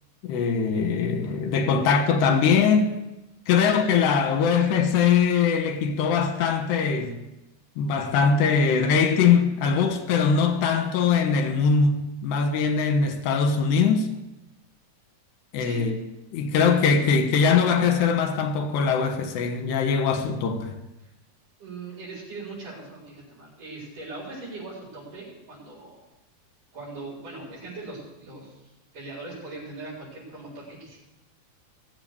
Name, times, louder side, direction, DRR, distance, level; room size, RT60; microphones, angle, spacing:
voice 1, 0.2-2.9 3.5-7.2 7.8-14.1 15.5-16.0 16.3-20.8, left 6 dB, 90° left, 3.4 m, -22 dB
voice 2, 21.6-26.1 26.7-28.6 28.9-31.0, right 3 dB, 50° right, 7.1 m, -40 dB
18.5 x 7.9 x 7.0 m
omnidirectional pair, 4.7 m